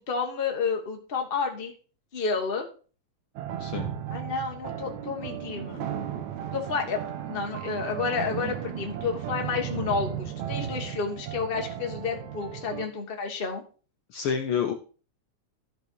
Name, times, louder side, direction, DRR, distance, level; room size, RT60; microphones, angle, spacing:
voice 1, 0.1-1.7 2.1-2.7 4.1-5.8 6.5-7.0 7.3-13.6, left 5 dB, 30° left, 3 dB, 1.0 m, -30 dB
sound 1, 3.4-12.9, right 10 dB, 75° right, 2.3 m, -35 dB
voice 2, 3.6-3.9 14.1-14.7, left 7 dB, 70° left, 5 dB, 1.3 m, -28 dB
13.0 x 5.4 x 4.7 m, 0.39 s
omnidirectional pair, 3.4 m